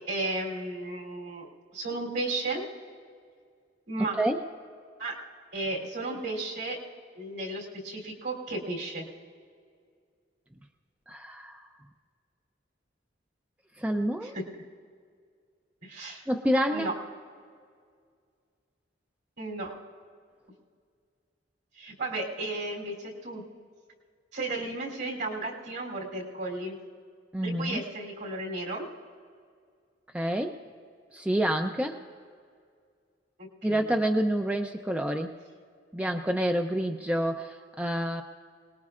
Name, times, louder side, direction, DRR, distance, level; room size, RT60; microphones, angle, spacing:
voice 1, 0.1-2.6 3.9-4.1 5.0-5.1 5.5-6.8 7.1-9.0 14.2-14.4 15.8-16.2 16.7-16.9 19.4-19.7 21.8-23.4 24.3-26.7 27.4-28.9 33.7-33.8, right 2 dB, 65° right, -1 dB, 3.3 m, -34 dB
voice 2, 11.1-11.6 13.8-14.4 16.3-16.9 27.3-27.8 30.1-30.6 31.1-32.0 33.6-35.3 35.9-38.2, right 1 dB, 5° right, 4 dB, 0.5 m, -28 dB
26.0 x 19.5 x 2.4 m, 2.1 s
head